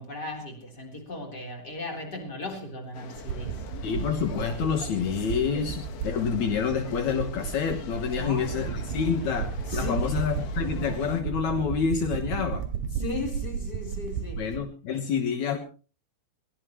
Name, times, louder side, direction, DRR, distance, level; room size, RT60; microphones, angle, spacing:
voice 1, 0.0-3.7 8.2-8.7 9.7-10.2 12.9-14.5, left 2 dB, 25° left, 3.9 m, -37 dB
sound 1, 2.9-11.2, left 8 dB, 90° left, 4.3 m, -43 dB
sound 2, 3.1-14.6, right 7 dB, 60° right, 2.7 m, -34 dB
voice 2, 3.8-12.6 14.4-15.6, left 6 dB, 70° left, 1.7 m, -28 dB
22.5 x 18.0 x 3.1 m
omnidirectional pair, 5.3 m